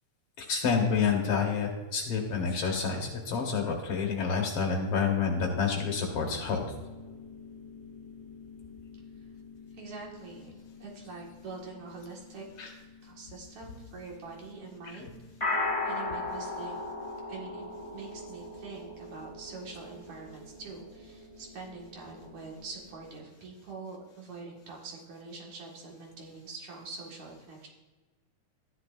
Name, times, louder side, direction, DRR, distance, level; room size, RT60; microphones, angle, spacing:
voice 1, 0.4-6.6 12.6-12.7 14.8-15.1, left 6 dB, 60° left, 1 dB, 1.9 m, -29 dB
sound 1, 5.3-23.1, left 3 dB, 15° left, 1.0 m, -41 dB
voice 2, 9.8-12.7 13.0-15.6 15.8-16.8 17.3-27.7, right 4 dB, 70° right, -2 dB, 3.2 m, -45 dB
13.0 x 10.5 x 2.6 m, 1.3 s
omnidirectional pair, 3.4 m